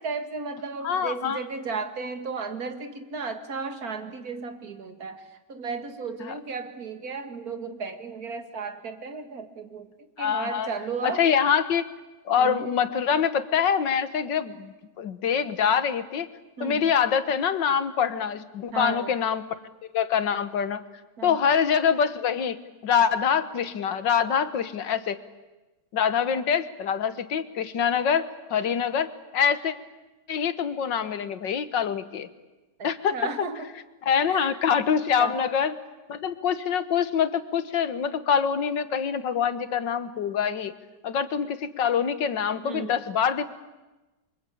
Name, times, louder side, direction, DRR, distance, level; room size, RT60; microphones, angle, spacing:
voice 1, 0.0-9.9 10.2-11.2 12.4-12.7 16.6-16.8 18.7-19.2 21.2-21.4 32.8-33.7 34.3-34.6 35.2-35.3 42.6-43.0, right 4 dB, 55° right, 8 dB, 2.5 m, -34 dB
voice 2, 0.8-1.4 6.2-6.3 10.2-10.7 11.0-11.9 12.3-16.3 16.6-19.4 19.9-20.8 21.2-22.6 22.8-25.2 25.9-29.7 30.3-32.3 32.8-33.2 34.0-35.7 36.1-40.7 41.0-43.4, left 7 dB, 75° left, 12 dB, 2.0 m, -25 dB
28.5 x 24.0 x 8.6 m, 1.1 s
omnidirectional pair, 2.0 m